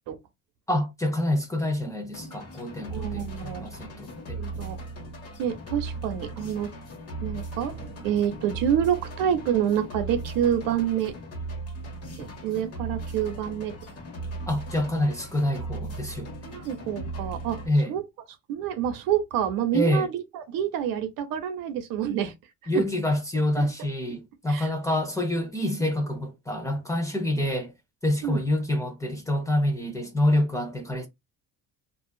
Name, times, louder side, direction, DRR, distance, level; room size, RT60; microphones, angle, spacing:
voice 1, 0.7-4.4 14.5-16.6 17.7-17.9 19.7-20.1 22.7-27.7 28.0-31.1, left 1 dB, 10° left, 0.6 m, -27 dB
sound 1, 2.1-17.7, right 2 dB, 45° left, 1.2 m, -37 dB
voice 2, 2.9-3.7 4.4-4.8 5.4-6.7 7.2-11.1 12.2-13.7 16.4-17.6 17.9-18.0 18.5-22.3 22.7-22.8 23.6-23.7 24.5-24.7 28.2-28.4, right 9 dB, 75° right, 0.8 m, -27 dB
2.6 x 2.3 x 2.2 m
cardioid pair, 125°, 35 cm